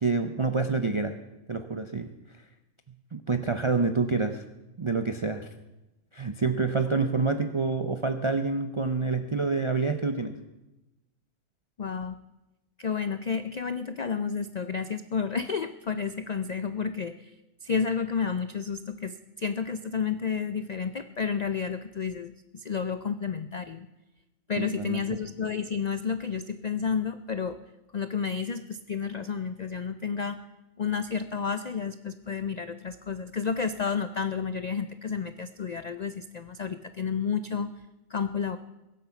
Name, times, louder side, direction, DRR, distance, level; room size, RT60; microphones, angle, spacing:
voice 1, 0.0-1.2 1.5-2.1 3.1-4.4 4.8-5.5 6.1-10.3 24.6-25.2, right 4 dB, 40° right, 7 dB, 0.4 m, -27 dB
voice 2, 11.8-12.2 12.8-17.3 17.6-23.9 24.5-27.6 27.9-30.4 30.8-37.7 38.1-38.6, left 6 dB, 75° left, 10 dB, 0.3 m, -31 dB
22.0 x 8.3 x 5.8 m, 1.0 s
omnidirectional pair, 1.4 m